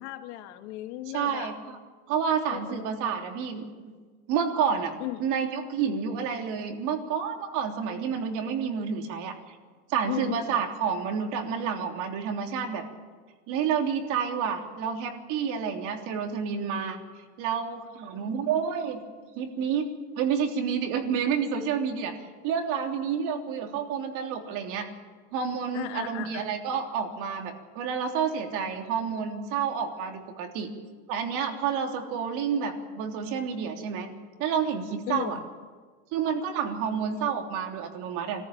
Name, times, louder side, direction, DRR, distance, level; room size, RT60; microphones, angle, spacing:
voice 1, 0.0-1.6 2.5-2.9 5.0-5.2 10.1-10.6 25.7-26.5 35.1-35.4, left 15 dB, 80° left, 7 dB, 1.9 m, -35 dB
voice 2, 1.1-1.8 2.1-3.9 4.3-9.6 9.9-12.8 13.5-17.0 17.4-19.0 19.3-19.9 20.2-22.1 22.4-24.9 25.3-30.7 31.1-34.1 34.4-35.4 36.1-38.5, right 7 dB, 60° right, 3 dB, 3.3 m, -29 dB
25.0 x 14.5 x 8.8 m, 1.5 s
cardioid pair, 145°, 34 cm